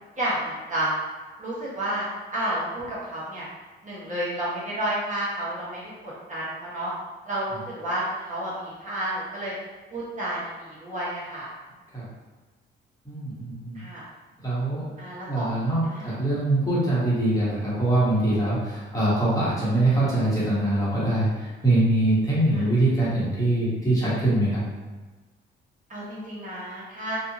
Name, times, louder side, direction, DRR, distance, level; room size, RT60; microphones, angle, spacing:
voice 1, 0.2-0.9 1.4-2.0 2.3-3.4 3.8-6.9 7.2-9.5 9.9-11.5 13.7-14.0 15.0-15.5 15.9-16.1 22.5-22.6 25.9-27.2, right 1 dB, 40° right, -8 dB, 1.1 m, -31 dB
voice 2, 13.0-13.8 14.4-14.8 15.3-24.6, right 1 dB, 15° left, -9 dB, 1.2 m, -23 dB
2.7 x 2.5 x 2.7 m, 1.3 s
cardioid pair, 90°, 20 cm